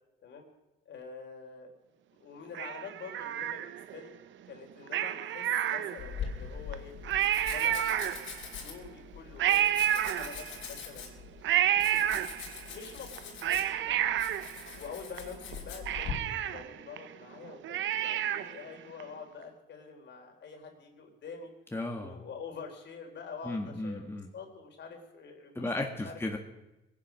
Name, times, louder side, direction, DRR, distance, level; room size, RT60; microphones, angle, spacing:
voice 1, 0.9-1.7 2.2-4.1 4.5-7.0 7.4-11.1 11.7-12.1 12.7-14.0 14.7-21.5 21.9-24.0 24.3-25.7 26.0-26.2, left 5 dB, 65° left, 2 dB, 3.8 m, -46 dB
Cat, 2.5-4.0 4.9-6.3 6.7-6.8 7.0-8.5 9.4-10.7 11.4-12.7 13.2-15.2 15.5-15.6 15.9-18.6 19.0-19.1, right 11 dB, 75° right, 0.8 m, -30 dB
Domestic sounds home sounds, 6.0-16.1, left 7 dB, 80° left, 4.3 m, -42 dB
voice 2, 21.7-22.2 23.4-24.3 25.6-26.4, left 2 dB, 10° left, 2 dB, 1.9 m, -35 dB
22.0 x 10.0 x 6.2 m, 0.97 s
cardioid pair, 90°, 20 cm